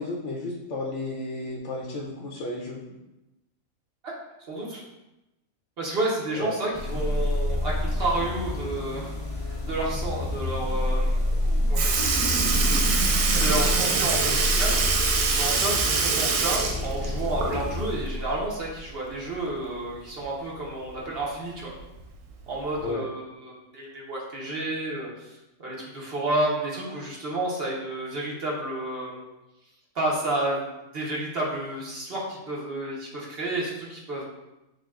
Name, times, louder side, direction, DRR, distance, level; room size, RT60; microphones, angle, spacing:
voice 1, 0.0-2.8 6.3-6.5 22.8-23.1, left 2 dB, 65° left, -2 dB, 0.8 m, -33 dB
voice 2, 4.5-4.8 5.8-9.1 9.4-11.2 11.7-11.9 13.4-14.8 15.3-21.7 22.5-29.2 29.9-34.2, right 2 dB, 50° right, -4 dB, 0.9 m, -30 dB
sound 1, 6.7-18.7, left 1 dB, 50° left, 0.4 m, -28 dB
Sink (filling or washing) / Liquid, 11.3-11.4 11.7-17.8 18.2-18.3 19.8-19.9 20.9-21.0 21.8-22.0 22.8-22.9, right 4 dB, 90° right, 1.1 m, -25 dB
6.2 x 2.2 x 2.3 m, 0.97 s
omnidirectional pair, 1.5 m